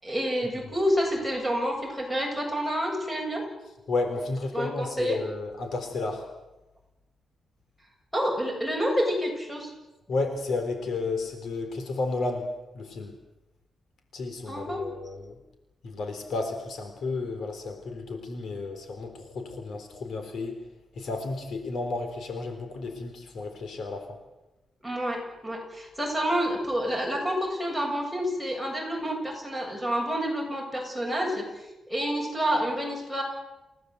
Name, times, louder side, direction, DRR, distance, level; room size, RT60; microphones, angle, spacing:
voice 1, 0.0-3.4 4.5-5.2 8.1-9.7 14.5-14.8 24.8-31.5 31.9-33.2, equal, 5° left, 1 dB, 7.7 m, -28 dB
voice 2, 3.9-6.3 10.1-13.2 14.1-15.4 15.8-20.6 21.0-24.2, left 3 dB, 60° left, 6 dB, 3.9 m, -32 dB
29.5 x 17.0 x 8.1 m, 1.0 s
wide cardioid pair, 150°, 0 cm